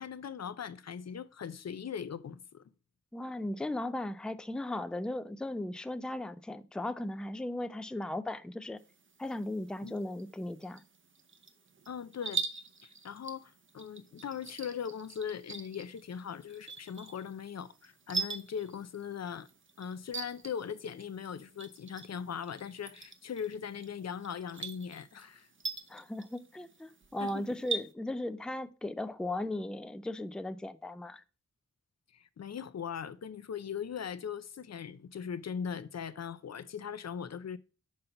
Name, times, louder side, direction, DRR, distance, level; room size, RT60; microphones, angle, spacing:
voice 1, 0.0-2.6 9.8-9.9 11.9-12.4 13.0-19.5 19.8-25.5 27.2-27.5 32.1-37.6, left 7 dB, 60° left, 0.6 m, -40 dB
voice 2, 3.1-8.8 9.2-10.8 25.9-31.2, left 1 dB, 5° left, 0.4 m, -37 dB
sound 1, 8.8-27.9, right 4 dB, 40° right, 0.8 m, -43 dB
5.6 x 5.2 x 5.6 m
wide cardioid pair, 90°, 30 cm